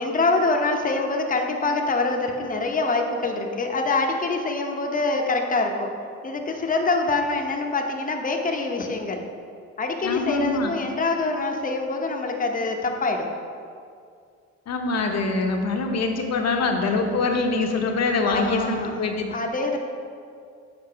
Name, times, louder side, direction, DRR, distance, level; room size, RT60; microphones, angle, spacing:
voice 1, 0.0-5.9 6.2-9.2 9.8-13.3 18.2-18.9 19.3-19.8, left 3 dB, 25° left, 2 dB, 0.8 m, -25 dB
voice 2, 10.0-10.7 14.7-19.2, left 3 dB, 60° left, 3 dB, 0.9 m, -24 dB
6.7 x 4.7 x 4.6 m, 2.3 s
cardioid pair, 90°, 30 cm